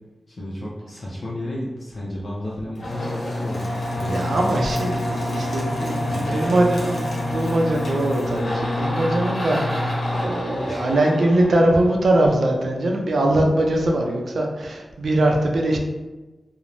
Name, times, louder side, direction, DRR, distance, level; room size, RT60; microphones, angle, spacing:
voice 1, 0.3-4.5 6.1-6.6 10.7-11.1, left 1 dB, 55° left, -6 dB, 0.5 m, -32 dB
sound 1, 2.7-12.3, left 1 dB, 85° left, 0.7 m, -27 dB
voice 2, 4.1-15.8, right 1 dB, 80° right, 1 dB, 0.4 m, -22 dB
2.5 x 2.0 x 3.0 m, 1.2 s
wide cardioid pair, 115°, 0 cm